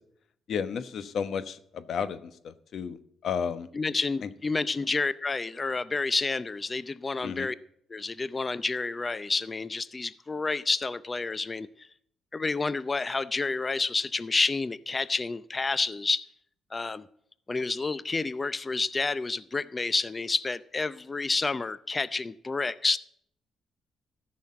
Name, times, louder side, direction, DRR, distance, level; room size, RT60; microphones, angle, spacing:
voice 1, 0.5-3.0 3.2-3.7 4.2-4.3 7.2-7.5, left 7 dB, 65° left, 12 dB, 1.0 m, -32 dB
voice 2, 3.7-7.5 7.9-11.9 12.3-16.2 16.7-17.1 17.5-23.0, left 3 dB, 30° left, 16 dB, 0.6 m, -29 dB
14.0 x 6.3 x 8.6 m, 0.68 s
cardioid pair, 75°, 0 cm